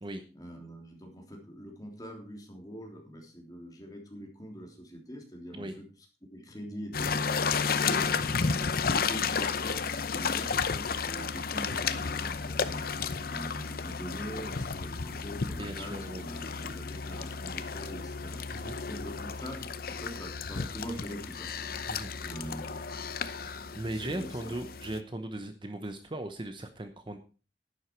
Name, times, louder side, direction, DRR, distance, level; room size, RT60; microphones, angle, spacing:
voice 1, 0.3-5.9 6.3-7.3 7.9-12.8 13.3-21.5 22.2-23.0 23.7-24.5, equal, 20° left, 1 dB, 3.2 m, -43 dB
sound 1, 6.9-25.0, left 5 dB, 55° left, 0.7 m, -32 dB
voice 2, 15.6-16.2 18.5-18.8 21.9-22.1 23.7-27.2, right 1 dB, 25° right, 8 dB, 0.9 m, -38 dB
11.0 x 9.9 x 4.6 m, 0.36 s
head